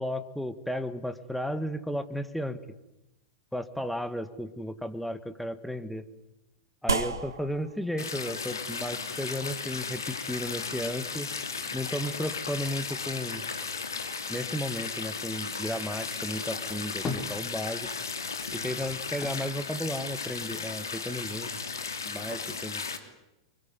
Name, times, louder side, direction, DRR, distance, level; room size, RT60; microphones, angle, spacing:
voice 1, 0.0-2.6 3.5-6.1 6.8-11.3 11.7-13.5 14.3-17.9 18.5-21.6 22.1-22.8, equal, ahead, 10 dB, 1.8 m, -34 dB
sound 1, 6.9-15.6, right 3 dB, 80° right, 1.7 m, -39 dB
sound 2, 8.0-23.0, left 5 dB, 75° left, 2.9 m, -35 dB
sound 3, 17.0-18.1 18.4-20.8 21.1-22.0, left 4 dB, 20° left, 3.3 m, -40 dB
26.0 x 23.5 x 9.7 m, 0.94 s
figure-of-eight pair, 95°, 2 cm